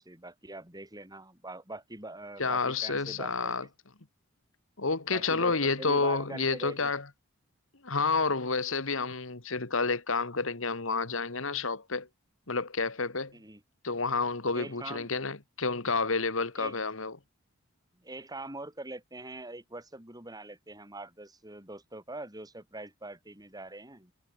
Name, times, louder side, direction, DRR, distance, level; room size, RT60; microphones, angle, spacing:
voice 1, 0.0-3.5 5.1-6.9 13.3-13.6 14.5-15.1 16.6-16.8 18.0-24.1, right 2 dB, 15° right, 5.6 m, -43 dB
voice 2, 2.4-3.7 4.8-7.0 7.8-12.1 12.5-13.3 13.8-17.2, left 4 dB, 65° left, 1.8 m, -30 dB
head